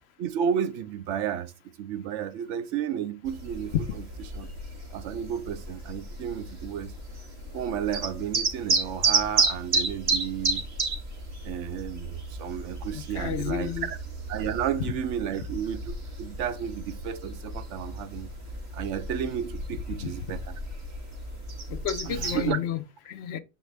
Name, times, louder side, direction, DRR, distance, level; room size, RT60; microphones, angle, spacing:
voice 1, 0.2-1.5 1.8-4.0 4.3-4.5 4.9-6.9 7.5-10.6 11.4-14.0 14.3-18.3 18.7-20.6 22.1-22.6, right 9 dB, 80° right, 0.9 m, -32 dB
sound 1, 3.3-22.5, right 3 dB, 60° right, 1.5 m, -32 dB
voice 2, 12.9-13.9 20.0-20.1 21.7-23.4, left 9 dB, 65° left, 0.8 m, -32 dB
7.2 x 4.3 x 3.3 m
omnidirectional pair, 1.2 m